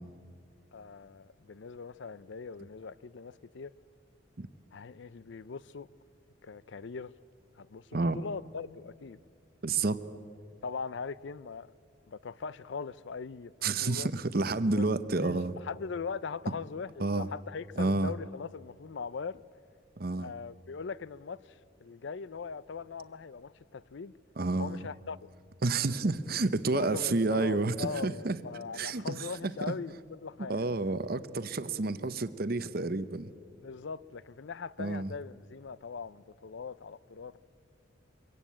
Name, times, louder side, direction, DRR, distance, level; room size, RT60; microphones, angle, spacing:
voice 1, 0.7-3.7 4.7-5.9 6.4-7.1 7.6-9.2 10.6-11.7 12.1-13.5 13.8-14.1 14.8-14.9 15.2-19.4 20.2-24.1 24.6-25.2 26.7-30.7 33.6-37.4, left 5 dB, 65° left, 0.5 m, -40 dB
voice 2, 9.6-10.0 13.6-15.5 17.0-17.3 17.8-18.1 20.0-20.3 24.4-24.9 25.6-28.4 28.7-29.7 30.5-33.3 34.8-35.1, right 3 dB, 50° right, 0.8 m, -30 dB
24.0 x 16.5 x 8.7 m
head